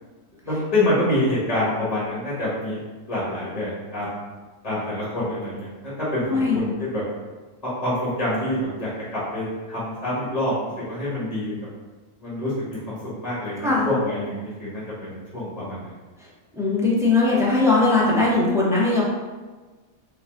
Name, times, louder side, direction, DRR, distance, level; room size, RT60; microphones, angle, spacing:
voice 1, 0.4-2.8 3.1-4.2 4.6-5.7 6.0-7.0 7.6-11.5 12.2-12.5 12.9-15.9, left 1 dB, 25° left, -8 dB, 1.3 m, -26 dB
voice 2, 6.3-6.6 13.6-13.9 16.5-19.0, left 3 dB, 5° right, -6 dB, 0.5 m, -19 dB
4.7 x 2.6 x 3.7 m, 1.3 s
omnidirectional pair, 1.6 m